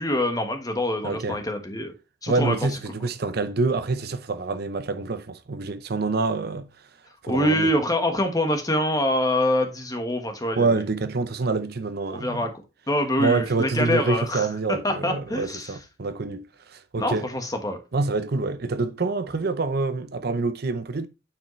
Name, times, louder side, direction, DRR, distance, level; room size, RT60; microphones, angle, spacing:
voice 1, 0.0-1.9 2.2-2.6 7.3-10.7 12.1-12.5 12.9-15.7 17.0-17.8, left 1 dB, 20° left, 1.3 m, -25 dB
voice 2, 1.0-1.4 2.3-6.7 7.2-7.7 10.6-12.5 13.2-17.3 17.9-21.1, right 3 dB, 60° right, 0.7 m, -26 dB
8.9 x 5.0 x 3.1 m
head